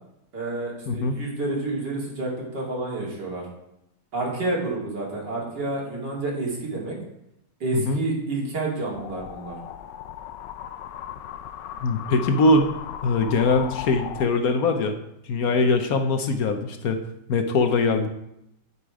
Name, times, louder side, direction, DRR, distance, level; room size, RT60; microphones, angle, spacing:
voice 1, 0.3-3.4 4.1-7.0 7.6-9.6 15.4-15.5, right 2 dB, 75° right, -3 dB, 3.3 m, -29 dB
voice 2, 0.9-1.2 7.7-8.0 11.8-12.7 13.0-15.0 15.3-17.0 17.3-18.1, left 3 dB, 60° left, 7 dB, 1.2 m, -22 dB
sound 1, 8.9-14.3, left 10 dB, 85° left, 1.3 m, -37 dB
11.0 x 5.7 x 4.8 m, 0.81 s
omnidirectional pair, 1.9 m